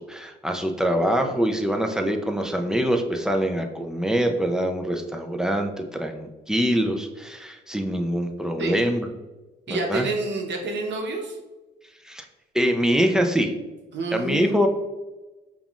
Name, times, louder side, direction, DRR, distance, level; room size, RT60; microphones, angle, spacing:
voice 1, 0.0-9.1 9.7-10.1 12.1-12.3 12.5-13.5 14.1-14.7, equal, 5° right, 4 dB, 0.4 m, -24 dB
voice 2, 9.7-11.4 13.9-14.6, right 2 dB, 65° right, 1 dB, 0.9 m, -28 dB
5.3 x 2.4 x 2.3 m, 1.1 s
cardioid pair, 90°, 20 cm